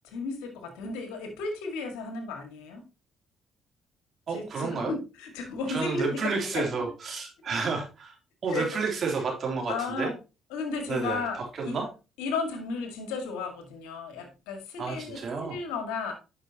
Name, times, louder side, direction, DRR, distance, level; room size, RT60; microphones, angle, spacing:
voice 1, 0.0-2.8 4.3-6.9 8.5-8.8 9.7-10.1 10.5-11.8 12.2-16.1, left 4 dB, 85° left, 5 dB, 1.9 m, -34 dB
voice 2, 4.3-4.9 5.7-8.2 8.4-10.1 10.9-11.9 14.8-15.6, right 4 dB, 55° right, 1 dB, 3.1 m, -31 dB
8.7 x 6.1 x 2.9 m, 0.29 s
supercardioid pair, 65°, 0 cm